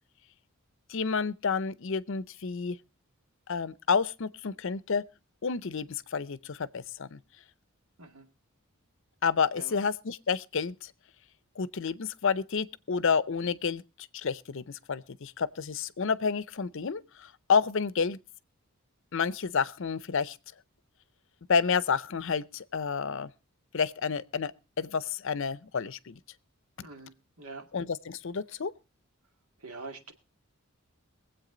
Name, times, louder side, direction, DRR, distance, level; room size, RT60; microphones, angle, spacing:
voice 1, 0.9-2.8 3.5-5.0 5.4-7.2 9.2-10.9 11.6-13.8 14.1-18.2 19.1-20.4 21.5-23.3 23.7-26.2 27.7-28.7, left 5 dB, 60° left, 0.6 m, -30 dB
voice 2, 26.8-27.7 29.6-30.1, right 3 dB, 85° right, 2.2 m, -44 dB
23.0 x 8.1 x 3.8 m
head